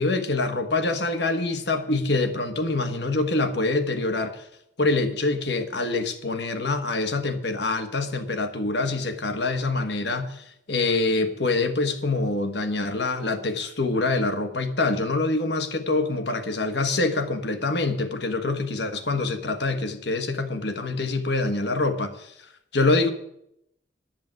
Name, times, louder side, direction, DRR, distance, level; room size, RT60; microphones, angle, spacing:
voice 1, 0.0-4.5 4.8-23.1, left 3 dB, 65° left, 1.4 m, -25 dB
10.5 x 7.3 x 9.2 m
head